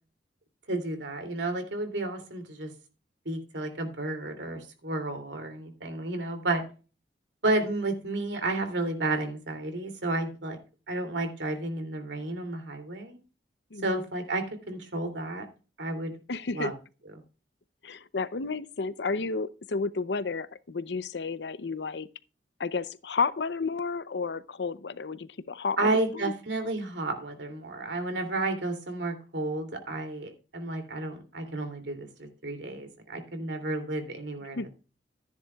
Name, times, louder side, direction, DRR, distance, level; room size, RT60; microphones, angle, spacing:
voice 1, 0.7-2.7 3.2-6.6 7.4-10.6 10.9-13.2 13.8-15.5 15.8-16.2 16.5-16.7 25.8-34.7, right 2 dB, 80° right, 2.8 m, -31 dB
voice 2, 13.7-14.0 16.3-16.7 17.8-22.1 22.6-26.3 34.6-34.7, left 4 dB, 70° left, 0.7 m, -32 dB
14.0 x 10.5 x 2.3 m
head